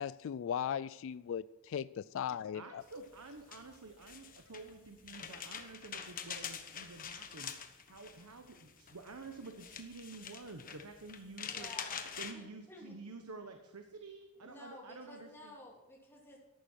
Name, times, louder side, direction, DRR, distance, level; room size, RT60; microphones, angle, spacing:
voice 1, 0.0-2.8, left 8 dB, 60° left, 0.3 m, -38 dB
voice 2, 2.5-7.5 7.9-11.7 12.2-15.5, right 3 dB, 85° right, 1.2 m, -50 dB
sound 1, 2.9-12.3, left 7 dB, 40° left, 1.3 m, -46 dB
voice 3, 11.4-12.1 12.3-12.9 14.4-16.4, left 1 dB, 10° left, 3.2 m, -53 dB
14.0 x 11.5 x 4.6 m
head